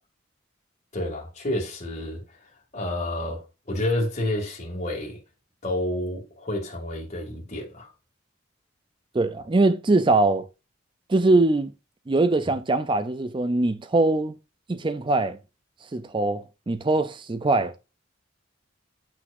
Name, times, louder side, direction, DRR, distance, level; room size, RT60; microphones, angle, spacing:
voice 1, 0.9-2.2 2.7-5.2 5.6-7.9, left 1 dB, 35° left, 2.4 m, -29 dB
voice 2, 9.1-10.5 11.1-11.7 12.1-14.3 14.7-15.4 15.9-17.7, right 2 dB, 25° right, 0.4 m, -22 dB
7.9 x 5.9 x 2.6 m
head